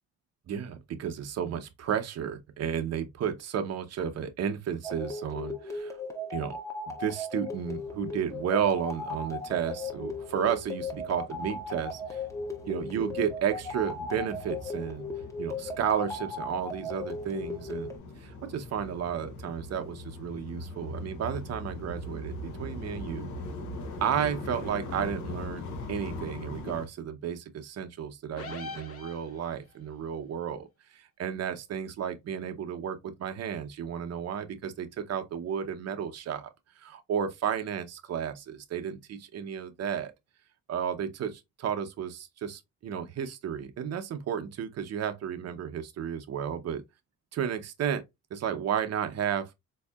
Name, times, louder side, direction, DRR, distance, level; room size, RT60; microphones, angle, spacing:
voice 1, 0.5-6.0 6.3-6.6 6.9-12.2 12.7-15.1 15.4-17.9 18.2-23.3 24.0-40.1 40.7-46.8 47.3-48.0 48.3-49.5, right 8 dB, 55° right, 0.7 m, -33 dB
sound 1, 4.8-18.0, left 2 dB, 10° left, 0.9 m, -37 dB
sound 2, 7.5-26.9, left 2 dB, 70° left, 0.8 m, -42 dB
sound 3, 28.4-29.8, left 3 dB, 50° left, 1.1 m, -41 dB
4.0 x 2.7 x 2.3 m
cardioid pair, 90°, 30 cm